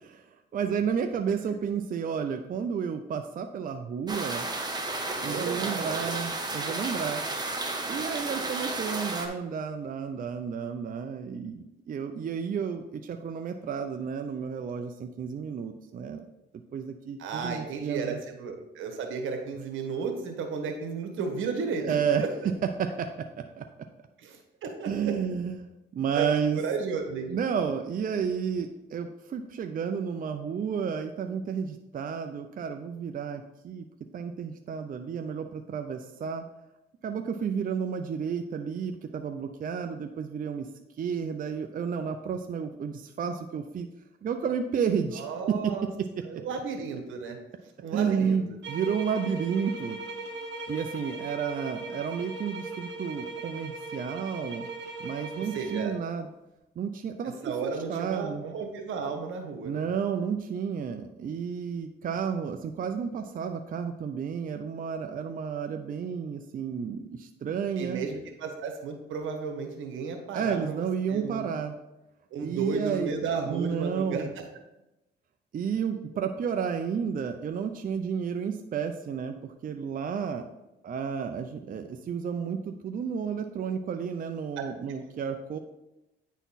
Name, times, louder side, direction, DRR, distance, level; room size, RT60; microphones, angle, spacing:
voice 1, 0.0-4.5 5.2-7.2 7.9-16.3 16.7-18.2 21.8-23.1 23.6-23.7 24.9-26.6 27.3-33.9 34.1-36.4 37.0-40.7 41.0-43.9 44.2-46.1 47.9-50.0 50.7-54.7 55.0-56.3 56.8-58.5 59.6-68.0 70.3-71.7 72.4-73.1 73.5-74.3 75.5-80.4 80.8-85.6, right 7 dB, 45° right, 6 dB, 0.5 m, -31 dB
sound 1, 4.1-9.3, right 2 dB, 20° right, 1.1 m, -32 dB
voice 2, 5.1-6.1 17.2-22.3 24.2-25.1 26.1-27.3 45.1-45.9 46.2-47.4 47.8-48.4 55.4-55.9 57.4-59.8 67.8-71.5 72.3-74.2 84.6-84.7, right 5 dB, 80° right, 4 dB, 1.3 m, -33 dB
sound 2, 48.6-56.0, right 3 dB, 65° right, 1.3 m, -39 dB
9.2 x 4.1 x 4.1 m, 0.95 s
cardioid pair, 90°, 20 cm